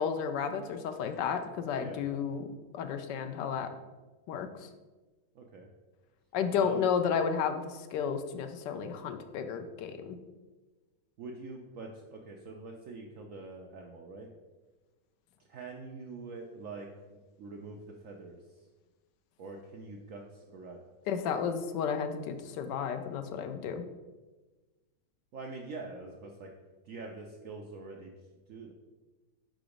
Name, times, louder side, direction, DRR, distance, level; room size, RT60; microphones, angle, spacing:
voice 1, 0.0-2.5 2.7-3.7 4.3-4.5 6.3-10.2 21.1-23.9, left 7 dB, 80° left, 8 dB, 1.2 m, -32 dB
voice 2, 5.4-5.7 6.5-6.9 11.2-14.3 15.5-18.4 19.4-20.8 25.3-26.5 26.9-28.1 28.5-28.7, right 3 dB, 70° right, 1 dB, 0.7 m, -44 dB
5.0 x 3.9 x 4.9 m, 1.2 s
omnidirectional pair, 1.9 m